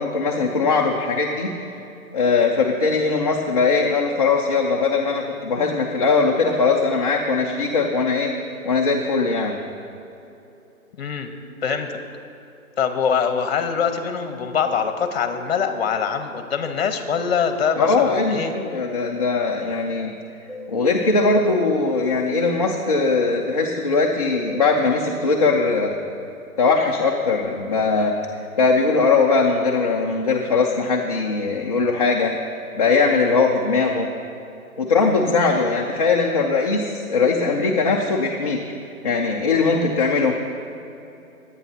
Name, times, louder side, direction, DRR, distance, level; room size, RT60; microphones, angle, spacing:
voice 1, 0.0-1.5 2.1-8.3 8.6-9.6 17.7-20.1 20.7-26.0 26.6-28.1 28.6-32.3 32.7-34.1 34.8-38.6 39.0-40.4, left 4 dB, 25° left, -1 dB, 0.5 m, -20 dB
voice 2, 11.0-11.3 11.6-11.9 12.8-18.5, left 6 dB, 45° left, 7 dB, 1.1 m, -23 dB
sound 1, 20.5-20.7 21.5-21.7 22.5-22.7 23.5-23.7 24.5-24.7 25.5-25.8, left 3 dB, 15° right, 1.8 m, -37 dB
21.0 x 9.0 x 2.8 m, 2.8 s
hypercardioid pair, 150°, 43 cm